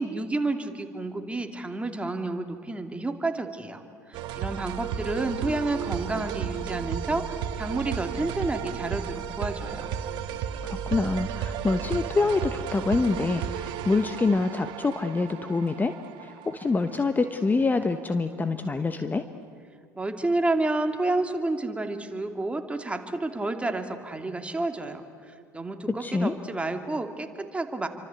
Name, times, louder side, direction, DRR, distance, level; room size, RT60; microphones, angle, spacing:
voice 1, 0.0-3.8 4.1-9.9 19.9-27.9, right 2 dB, 15° right, 5 dB, 2.7 m, -30 dB
sound 1, 4.1-17.5, right 9 dB, 60° right, 1.8 m, -34 dB
voice 2, 10.6-15.9 16.2-19.2 25.9-26.3, left 3 dB, 20° left, 9 dB, 1.2 m, -26 dB
28.0 x 25.0 x 8.4 m, 2.3 s
hypercardioid pair, 70°, 9 cm